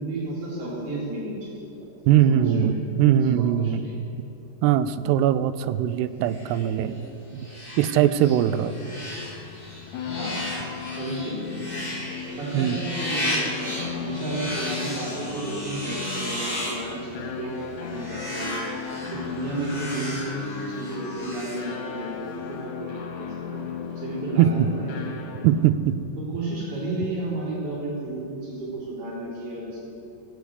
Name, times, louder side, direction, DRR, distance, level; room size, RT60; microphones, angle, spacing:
voice 1, 0.0-1.6 2.3-3.0 3.4-3.9 10.2-10.4 10.9-18.6 19.1-25.1 26.3-29.9, right 2 dB, 65° right, -8 dB, 5.9 m, -33 dB
voice 2, 2.1-3.9 4.6-7.0 7.8-8.8 12.5-12.8 24.4-24.7 25.4-26.0, right 10 dB, 85° right, 12 dB, 2.6 m, -21 dB
sound 1, 6.3-22.2, left 1 dB, 20° left, 1.2 m, -35 dB
sound 2, 8.9-25.7, left 7 dB, 85° left, 3.5 m, -36 dB
18.0 x 8.1 x 8.3 m, 2.8 s
omnidirectional pair, 4.8 m